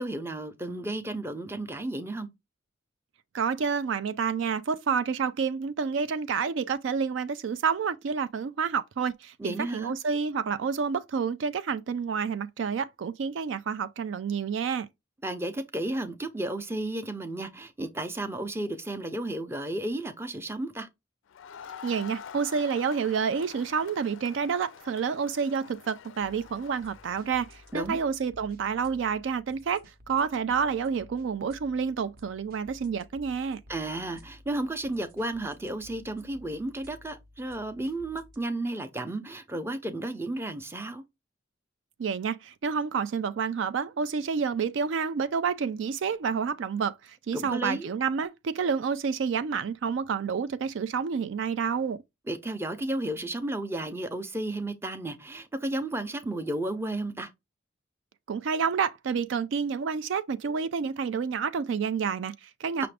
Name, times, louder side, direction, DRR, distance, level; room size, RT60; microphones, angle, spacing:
voice 1, 0.0-2.3 9.4-10.0 15.2-20.9 27.7-28.0 33.7-41.0 47.3-47.9 52.3-57.3 62.8-62.9, right 1 dB, 10° right, 0.5 m, -33 dB
voice 2, 3.3-14.9 21.8-33.6 42.0-52.0 58.3-62.9, right 6 dB, 70° right, 0.4 m, -29 dB
Crowd, 21.3-27.9, left 7 dB, 75° left, 0.4 m, -47 dB
sound 1, 26.2-38.4, left 1 dB, 50° right, 0.8 m, -54 dB
5.8 x 2.5 x 3.3 m
head